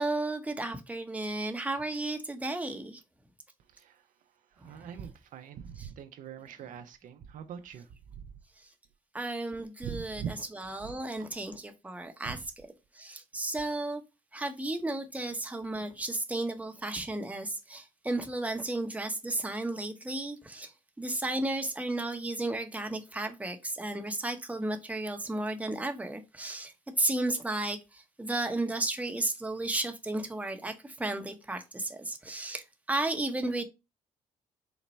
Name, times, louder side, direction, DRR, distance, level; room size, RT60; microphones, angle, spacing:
voice 1, 0.0-3.0 4.6-5.0 5.8-5.9 9.1-12.7 12.9-14.0 14.3-20.7 21.0-26.7 27.0-33.6, right 2 dB, 10° right, 0.8 m, -33 dB
voice 2, 3.7-4.1 4.5-8.3 9.8-10.3 10.8-11.3 12.3-12.4, right 8 dB, 70° right, 0.5 m, -42 dB
4.0 x 2.2 x 4.1 m
supercardioid pair, 70°, 14 cm